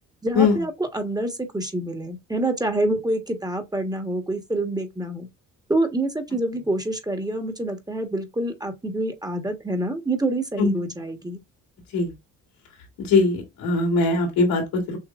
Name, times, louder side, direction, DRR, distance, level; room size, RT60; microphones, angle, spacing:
voice 1, 0.2-5.3 5.7-11.4, right 1 dB, 10° right, 1.3 m, -26 dB
voice 2, 13.0-15.0, left 3 dB, 90° left, 2.9 m, -21 dB
6.6 x 3.1 x 2.5 m
cardioid pair, 100°, 33 cm